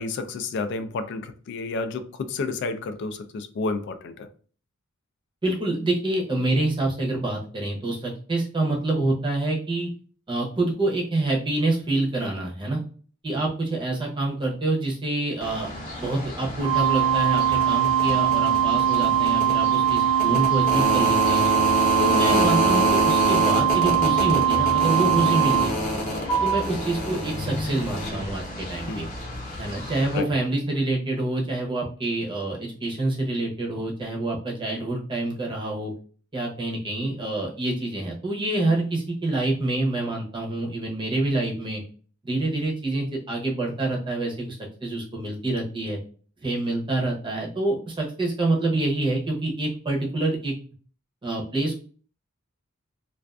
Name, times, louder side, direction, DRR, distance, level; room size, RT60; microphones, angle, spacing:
voice 1, 0.0-4.3 28.9-29.1 30.1-30.2, left 3 dB, 55° left, 0.3 m, -30 dB
voice 2, 5.4-9.9 10.3-12.8 13.2-15.7 16.0-21.5 22.0-25.8 26.4-29.1 29.6-35.9 36.3-41.8 42.2-46.0 46.4-50.5 51.2-51.8, right 2 dB, 25° right, 0.7 m, -26 dB
sound 1, 15.4-30.2, equal, 40° left, 0.8 m, -28 dB
sound 2, 16.6-25.6, right 10 dB, 75° right, 0.9 m, -21 dB
2.4 x 2.3 x 2.2 m
head